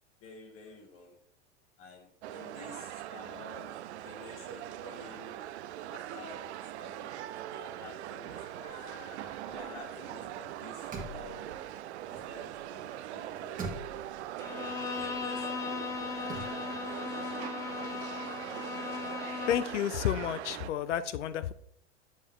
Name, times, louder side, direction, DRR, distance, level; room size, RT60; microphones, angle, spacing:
voice 1, 0.2-1.2 1.8-5.6 5.9-10.9 11.1-13.6 14.4-16.9 17.4-18.0, left 3 dB, 40° left, 2 dB, 1.4 m, -51 dB
sound 1, 2.2-20.7, right 12 dB, 70° right, 0.5 m, -41 dB
sound 2, 8.6-10.3 10.6-12.8 13.1-16.5, right 2 dB, 25° right, 1.4 m, -45 dB
Bowed string instrument, 14.4-19.8, left 6 dB, 10° left, 0.3 m, -37 dB
voice 2, 19.5-21.5, left 10 dB, 85° left, 14 dB, 0.6 m, -31 dB
7.4 x 4.5 x 3.6 m, 0.66 s
hypercardioid pair, 105°, 35 cm